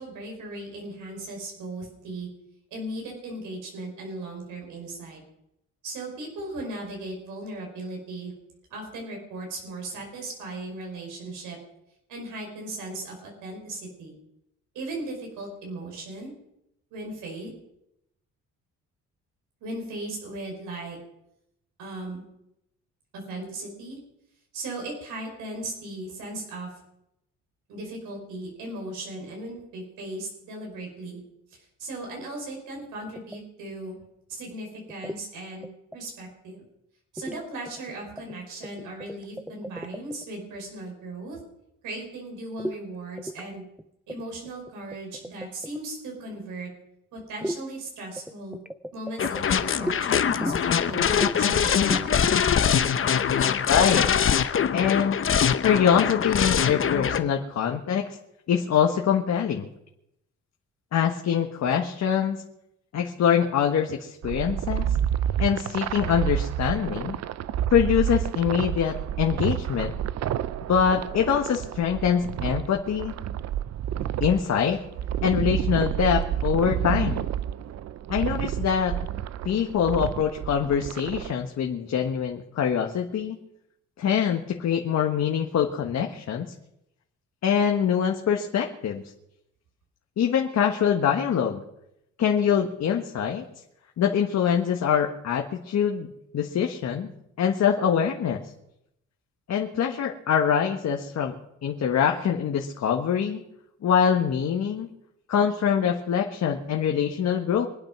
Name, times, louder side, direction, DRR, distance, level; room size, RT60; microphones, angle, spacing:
voice 1, 0.0-2.3 2.7-5.2 5.8-8.3 8.7-11.6 12.1-14.1 14.8-16.3 16.9-17.5 19.6-21.0 21.8-22.2 23.1-24.0 24.5-26.7 27.7-31.2 31.5-34.0 34.3-35.7 35.9-36.6 37.1-41.4 41.8-43.6 44.1-46.7 47.1-48.6 48.9-52.4, right 2 dB, 90° right, 0 dB, 5.1 m, -37 dB
sound 1, 33.2-33.4 34.9-35.2 35.6-36.0 37.2-37.4 37.7-38.4 38.6-40.3 42.6-42.8 43.2-43.5 43.8-43.9 44.1-45.8 47.4-47.6 48.2-50.0 50.4-50.9 51.2-51.4 51.7-52.1, right 1 dB, 5° right, 0.7 m, -34 dB
sound 2, 49.2-57.2, left 8 dB, 45° left, 1.0 m, -23 dB
voice 2, 53.6-54.0 54.7-55.2 55.6-58.2 58.5-59.7 60.9-62.4 62.9-64.9 65.4-67.2 67.7-69.9 70.7-73.2 74.2-74.8 75.2-77.3 78.1-79.0 79.4-83.4 84.0-86.5 87.4-89.0 90.2-91.6 92.2-93.4 94.0-96.1 96.3-97.1 97.4-98.4 99.5-101.3 101.6-103.4 103.8-104.9 105.3-107.7, left 8 dB, 60° left, 2 dB, 1.5 m, -24 dB
sound 3, 64.2-81.3, right 10 dB, 60° right, 0.6 m, -29 dB
24.0 x 8.9 x 6.0 m, 0.82 s
cardioid pair, 90°, 30 cm